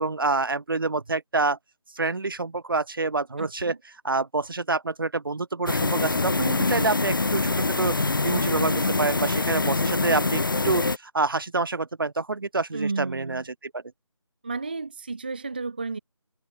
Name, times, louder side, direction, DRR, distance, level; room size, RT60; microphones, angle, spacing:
voice 1, 0.0-1.6 2.0-3.7 4.0-7.9 8.2-13.8, right 3 dB, 40° right, 0.9 m, -27 dB
voice 2, 3.4-3.8 12.7-13.5 14.4-16.0, right 3 dB, 15° right, 0.7 m, -32 dB
sound 1, 5.7-11.0, left 3 dB, 40° left, 0.6 m, -24 dB
figure-of-eight pair, 165°, 17 cm